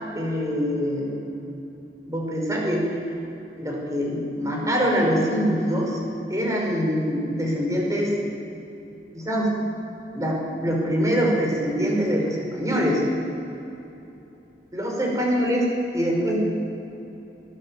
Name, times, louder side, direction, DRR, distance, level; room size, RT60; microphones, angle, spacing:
voice 1, 0.1-1.1 2.0-2.8 3.6-6.0 6.3-8.1 9.1-9.5 10.1-13.0 14.7-16.4, equal, 20° right, -1 dB, 5.8 m, -24 dB
26.5 x 16.0 x 7.9 m, 2.9 s
head